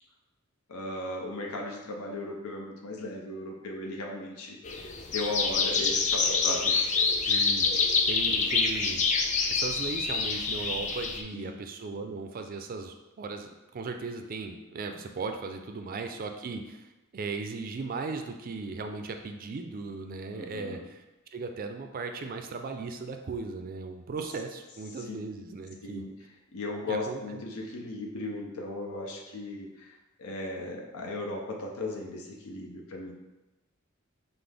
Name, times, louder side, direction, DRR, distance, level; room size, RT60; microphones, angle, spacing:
voice 1, 0.7-6.9 7.3-7.5 8.3-8.4 11.3-11.5 20.3-20.9 25.0-25.2 25.8-26.1 26.5-33.1, left 2 dB, 85° left, -1 dB, 0.7 m, -37 dB
sound 1, 4.6-11.2, left 4 dB, 35° left, 0.3 m, -26 dB
voice 2, 7.3-7.7 8.1-9.0 9.5-16.9 17.1-21.0 21.3-26.0 26.9-27.4, right 4 dB, 40° right, 6 dB, 0.4 m, -37 dB
5.8 x 2.0 x 3.4 m, 1.1 s
head